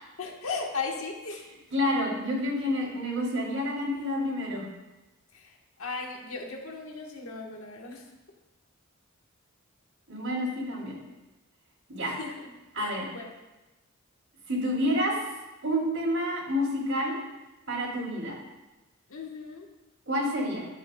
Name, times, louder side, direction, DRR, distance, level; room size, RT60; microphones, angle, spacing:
voice 1, 0.2-1.4 5.4-5.5 5.8-8.0 12.0-12.3 12.8-13.3 19.1-19.7, left 4 dB, 80° left, 1 dB, 1.2 m, -36 dB
voice 2, 1.7-4.6 10.1-11.0 11.9-12.2 12.7-13.1 14.5-15.2 15.6-17.2 17.7-18.3 20.1-20.7, equal, 80° right, -4 dB, 2.9 m, -28 dB
11.5 x 7.8 x 2.2 m, 1.1 s
head